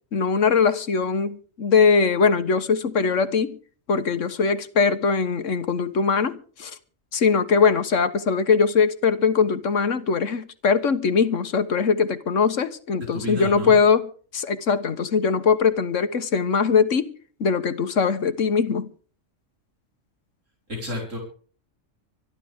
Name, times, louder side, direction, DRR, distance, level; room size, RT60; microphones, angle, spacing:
voice 1, 0.1-3.6 3.9-6.8 7.1-17.1 17.4-18.9, left 5 dB, 75° left, 1.6 m, -21 dB
voice 2, 13.1-13.8 20.7-21.2, left 2 dB, 75° right, 5.1 m, -31 dB
25.5 x 11.5 x 3.6 m
omnidirectional pair, 1.3 m